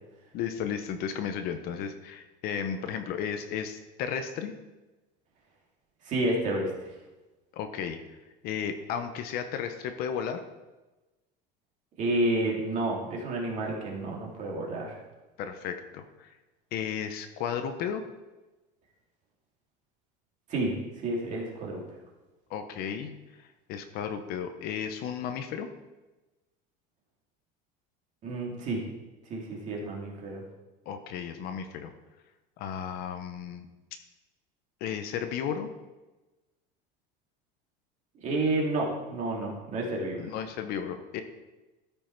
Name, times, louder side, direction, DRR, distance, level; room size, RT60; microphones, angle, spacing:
voice 1, 0.3-4.5 7.5-8.0 8.4-10.4 15.4-16.4 16.7-18.0 22.5-25.7 30.9-31.9 32.6-33.7 34.8-35.7 40.2-41.2, left 8 dB, 45° left, 8 dB, 0.7 m, -34 dB
voice 2, 6.0-6.7 12.0-15.0 20.5-20.7 21.0-21.8 28.2-28.8 29.3-30.4 38.2-40.2, right 2 dB, 35° right, -2 dB, 2.2 m, -30 dB
13.5 x 5.4 x 4.4 m, 1.1 s
cardioid pair, 175°, 21 cm